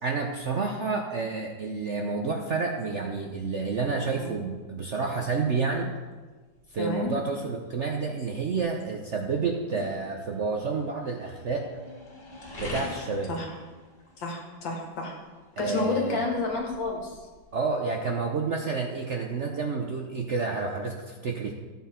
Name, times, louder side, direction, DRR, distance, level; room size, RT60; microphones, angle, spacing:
voice 1, 0.0-5.9 6.7-11.7 12.6-13.3 15.6-16.3 17.5-21.5, right 4 dB, 55° right, 1 dB, 0.8 m, -29 dB
sound 1, 2.8-18.2, left 2 dB, 40° left, 2.7 m, -47 dB
voice 2, 6.8-7.1 13.3-13.5 14.2-15.2 15.6-17.2, left 3 dB, 75° left, 0 dB, 2.5 m, -30 dB
13.0 x 7.5 x 4.3 m, 1.3 s
omnidirectional pair, 2.1 m